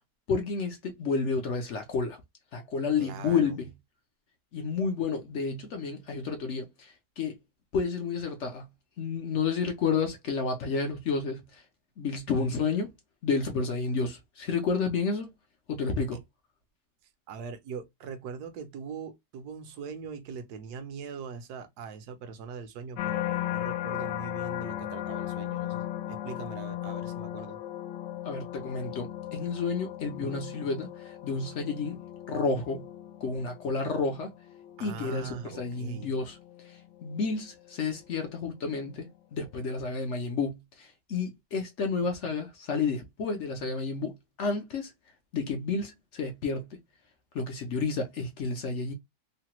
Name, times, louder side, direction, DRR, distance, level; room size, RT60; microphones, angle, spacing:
voice 1, 0.3-2.2 2.5-3.7 4.5-7.4 7.7-8.7 9.0-11.6 12.0-12.9 13.2-15.3 15.7-16.2 28.2-32.0 32.3-32.9 33.2-34.3 34.8-36.4 36.6-44.9 45.3-46.7 47.3-48.9, left 4 dB, 65° left, 0.7 m, -31 dB
voice 2, 3.0-3.5 16.1-16.2 17.3-27.6 34.8-36.1, right 6 dB, 70° right, 1.2 m, -41 dB
sound 1, 23.0-38.2 38.7-39.1, left 13 dB, 85° left, 1.2 m, -37 dB
3.2 x 2.1 x 2.9 m
omnidirectional pair, 1.8 m